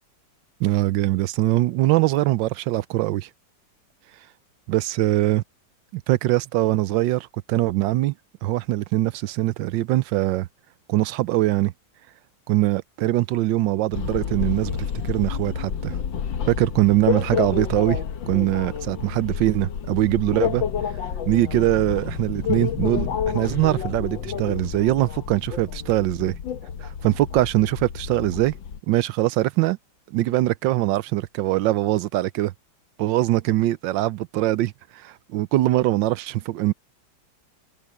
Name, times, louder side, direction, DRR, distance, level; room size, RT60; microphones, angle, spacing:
voice 1, 0.6-3.3 4.7-5.4 6.1-8.1 8.4-10.5 10.9-11.7 12.5-14.8 15.0-16.0 16.5-18.0 18.3-20.6 21.3-26.4 26.8-28.5 28.9-29.8 30.1-32.5 33.0-36.7, right 16 dB, 85° right, 1.3 m, -22 dB
sound 1, 13.9-28.8, left 7 dB, 85° left, 1.8 m, -29 dB
omnidirectional pair, 2.0 m